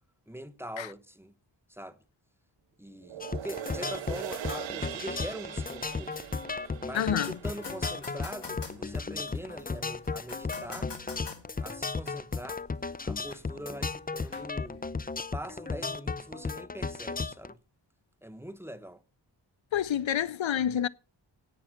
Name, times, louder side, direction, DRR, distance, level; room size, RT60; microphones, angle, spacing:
voice 1, 0.3-1.3 1.7-2.0 2.8-6.1 6.8-10.9 11.6-12.6 13.0-14.9 15.3-17.6 18.2-19.0, equal, 5° right, 0.9 m, -43 dB
sound 1, 3.0-9.6 10.0-10.1, right 12 dB, 80° right, 0.6 m, -42 dB
sound 2, 3.2-17.5, left 4 dB, 20° left, 0.5 m, -35 dB
sound 3, 5.2-15.2, left 4 dB, 65° left, 3.6 m, -49 dB
voice 2, 6.9-7.4 19.7-20.9, left 10 dB, 85° left, 0.7 m, -28 dB
11.0 x 9.1 x 5.7 m
wide cardioid pair, 90°, 45 cm